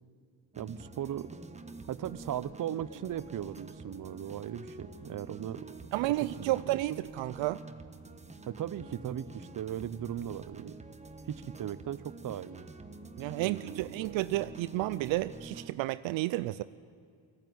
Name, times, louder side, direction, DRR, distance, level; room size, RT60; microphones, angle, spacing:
sound 1, 0.5-15.7, right 3 dB, 15° right, 1.2 m, -48 dB
voice 1, 0.6-1.3 1.9-5.7 6.0-7.0 8.5-10.7 11.3-12.7 13.4-14.1, right 10 dB, 45° right, 15 dB, 0.8 m, -38 dB
voice 2, 5.9-7.6 13.2-16.6, right 17 dB, 70° right, 15 dB, 0.6 m, -31 dB
19.0 x 15.0 x 9.6 m, 2.3 s
supercardioid pair, 80°, 46 cm